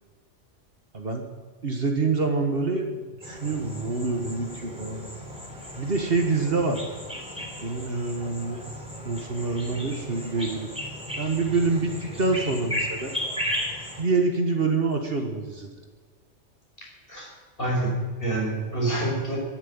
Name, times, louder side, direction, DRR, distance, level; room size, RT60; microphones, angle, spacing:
voice 1, 0.9-1.3 1.6-5.1 5.8-6.8 7.6-8.6 9.1-10.7 11.2-13.1 14.0-15.7, right 3 dB, 50° right, 3 dB, 1.7 m, -26 dB
sound 1, 3.2-14.0, left 1 dB, 5° right, 3.5 m, -35 dB
voice 2, 16.8-17.3 17.6-19.4, right 2 dB, 45° left, -2 dB, 5.9 m, -27 dB
12.0 x 11.0 x 8.9 m, 1.5 s
omnidirectional pair, 1.3 m